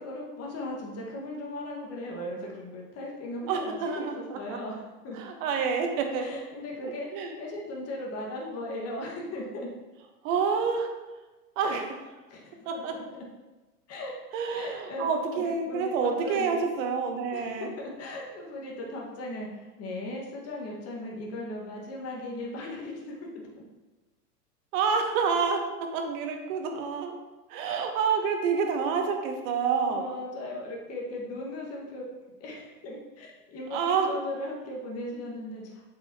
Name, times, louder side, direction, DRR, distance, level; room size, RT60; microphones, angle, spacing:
voice 1, 0.0-4.1 4.3-5.2 6.2-9.7 11.6-11.8 12.3-13.2 13.9-14.1 14.5-16.6 17.3-23.2 27.7-27.8 29.9-33.8 34.1-35.8, left 1 dB, 30° left, -2 dB, 1.6 m, -38 dB
voice 2, 3.5-4.6 5.1-6.3 7.1-7.3 10.2-10.9 11.6-11.9 12.6-12.9 14.3-17.7 24.7-25.6 25.9-27.2 27.5-30.1 33.7-34.1, right 5 dB, 55° right, 4 dB, 1.2 m, -28 dB
7.8 x 5.6 x 2.9 m, 1.2 s
hypercardioid pair, 105°, 47 cm